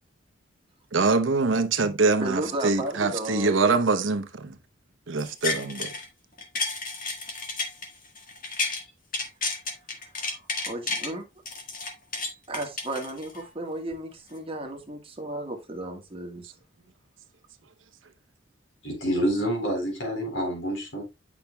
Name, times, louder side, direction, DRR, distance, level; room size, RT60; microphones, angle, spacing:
voice 1, 0.9-4.5 5.1-5.9, right 3 dB, 90° right, 0.9 m, -24 dB
voice 2, 2.2-3.5 10.2-11.2 12.5-16.5, right 1 dB, 30° right, 1.5 m, -34 dB
sound 1, 5.2-6.1 6.4-8.8 9.1-11.1 11.5-13.5 13.9-14.0, left 3 dB, 45° left, 1.6 m, -31 dB
voice 3, 18.8-21.0, equal, 80° left, 3.9 m, -27 dB
8.6 x 5.9 x 2.3 m
head